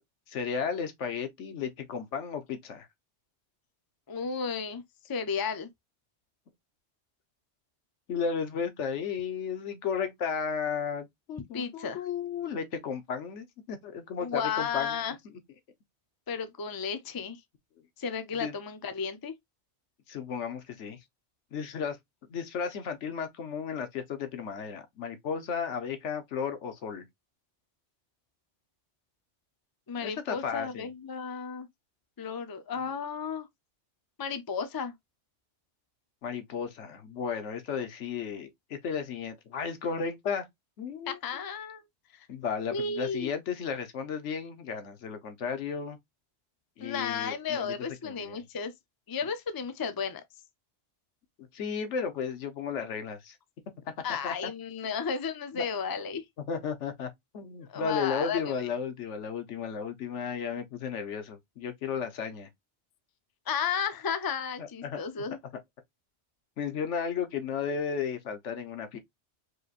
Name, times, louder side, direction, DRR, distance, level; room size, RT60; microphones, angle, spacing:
voice 1, 0.3-2.9 8.1-15.0 18.3-18.5 20.1-21.0 21.5-22.0 22.3-27.1 30.0-30.9 36.2-40.5 40.8-41.2 42.3-46.0 46.8-47.7 48.0-48.4 51.5-53.4 54.2-54.3 55.5-55.7 56.5-62.5 64.6-65.0 66.6-69.0, left 6 dB, 75° left, 1.2 m, -34 dB
voice 2, 4.1-5.7 11.5-12.0 14.2-15.2 16.3-17.4 18.0-19.3 29.9-31.7 32.2-33.5 34.2-34.9 41.1-41.8 42.1-42.3 42.7-43.3 46.8-48.7 49.1-50.2 54.0-56.2 57.7-58.5 63.5-65.4, left 6 dB, 30° left, 0.4 m, -33 dB
4.9 x 3.1 x 2.4 m
omnidirectional pair, 1.2 m